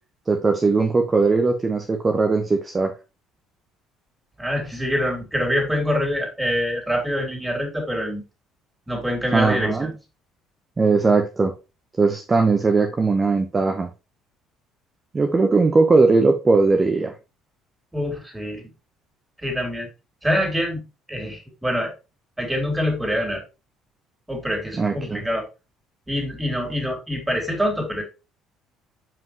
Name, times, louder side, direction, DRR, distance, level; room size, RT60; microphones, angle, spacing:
voice 1, 0.3-2.9 9.3-9.9 10.8-11.5 12.0-13.9 15.1-17.1 24.7-25.2, right 3 dB, 25° right, 5 dB, 0.9 m, -19 dB
voice 2, 4.4-8.2 8.9-9.9 17.9-18.6 19.4-19.9 20.2-21.9 22.4-23.4 24.3-25.4 26.1-28.0, equal, 10° right, 1 dB, 3.2 m, -25 dB
7.2 x 5.4 x 3.0 m, 0.29 s
figure-of-eight pair, 50°, 0 cm